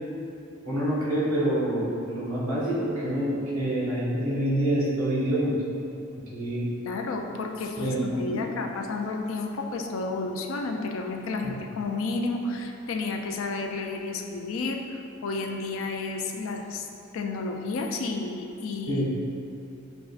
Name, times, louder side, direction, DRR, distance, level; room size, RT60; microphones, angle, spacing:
voice 1, 0.6-5.5 6.3-6.7 7.8-8.0 8.3-8.4 11.4-11.5 18.9-19.1, right 1 dB, 80° right, -8 dB, 1.5 m, -26 dB
voice 2, 6.8-16.9 17.1-19.1, left 3 dB, 70° left, 3 dB, 0.3 m, -31 dB
6.1 x 2.3 x 2.4 m, 2.7 s
head